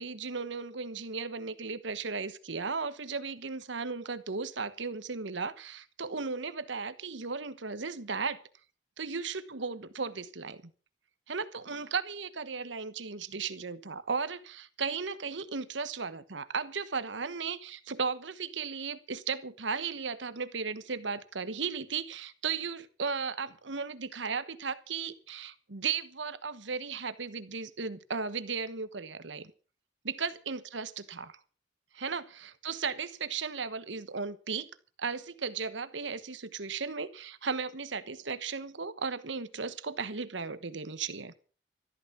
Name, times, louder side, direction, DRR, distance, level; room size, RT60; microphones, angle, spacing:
voice 1, 0.0-8.4 9.0-10.6 11.3-29.5 30.0-31.4 31.9-34.7 35.0-41.3, right 5 dB, 75° right, 1.2 m, -36 dB
14.0 x 12.5 x 6.0 m
head